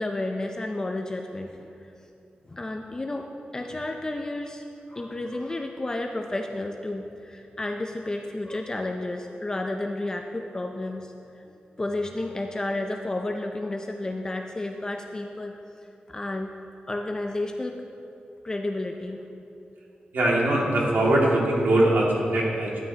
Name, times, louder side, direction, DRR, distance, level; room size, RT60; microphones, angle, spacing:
voice 1, 0.0-1.9 2.5-3.3 3.5-11.4 11.8-15.5 16.1-16.5 16.9-17.8 18.4-19.2, left 2 dB, 20° left, 3 dB, 0.4 m, -31 dB
voice 2, 20.1-22.8, right 1 dB, 85° right, -4 dB, 2.1 m, -22 dB
12.5 x 10.5 x 2.8 m, 2.7 s
wide cardioid pair, 165°, 3 cm